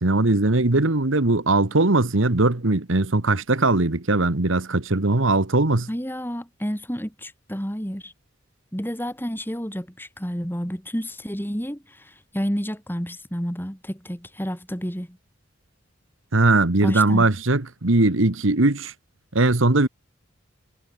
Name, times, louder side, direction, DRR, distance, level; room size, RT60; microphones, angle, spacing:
voice 1, 0.0-5.9 16.3-18.9 19.3-19.9, right 2 dB, 80° right, 1.6 m, -20 dB
voice 2, 5.9-8.1 8.7-15.2 16.8-17.3, equal, 10° left, 5.2 m, -30 dB
head